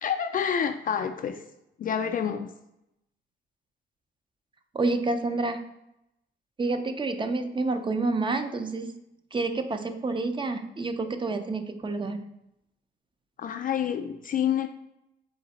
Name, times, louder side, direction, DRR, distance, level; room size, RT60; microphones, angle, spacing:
voice 1, 0.0-1.4 1.8-2.5 13.4-14.7, left 8 dB, 45° left, 6 dB, 0.4 m, -28 dB
voice 2, 4.7-5.6 6.6-8.9 9.3-12.2, right 3 dB, 25° right, 8 dB, 0.5 m, -28 dB
3.9 x 3.3 x 4.0 m, 0.85 s
cardioid pair, 90°, 20 cm